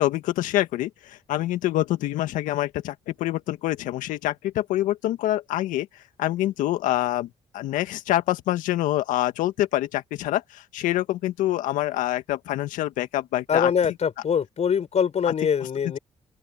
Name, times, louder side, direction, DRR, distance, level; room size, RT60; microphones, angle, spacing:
voice 1, 0.0-5.9 6.2-7.3 7.5-13.7 15.3-15.4, left 15 dB, 80° left, 2.0 m, -26 dB
voice 2, 13.5-16.0, left 7 dB, 55° left, 5.7 m, -23 dB
open air
supercardioid pair, 55°, 13 cm